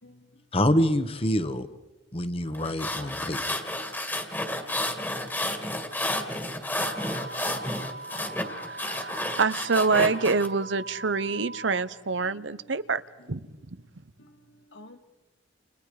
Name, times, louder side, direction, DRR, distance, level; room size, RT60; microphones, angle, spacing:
voice 1, 0.0-0.6 6.9-7.7 12.2-12.9 13.2-13.4 14.2-15.0, left 2 dB, 75° left, 6 dB, 2.2 m, -54 dB
voice 2, 0.5-1.7 2.1-3.6, left 1 dB, 30° left, 10 dB, 1.4 m, -26 dB
sound 1, 2.5-10.5, left 1 dB, 10° left, 2.1 m, -31 dB
sound 2, 6.8-11.8, right 3 dB, 40° right, 1.5 m, -41 dB
voice 3, 8.7-13.0 13.3-13.5, right 4 dB, 80° right, 15 dB, 0.9 m, -26 dB
30.0 x 29.5 x 5.1 m, 1.1 s
head